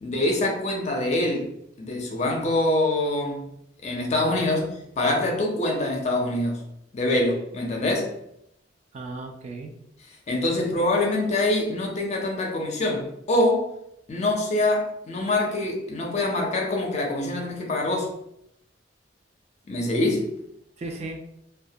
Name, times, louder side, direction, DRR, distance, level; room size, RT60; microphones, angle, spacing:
voice 1, 0.0-3.5 3.8-4.6 5.0-6.6 6.9-8.2 10.3-13.7 14.1-18.1 19.7-20.3, left 2 dB, 40° left, 0.5 m, -25 dB
voice 2, 4.3-4.7 8.9-9.7 10.5-10.9 20.8-21.2, right 3 dB, 35° right, 0.3 m, -36 dB
2.2 x 2.1 x 2.7 m
head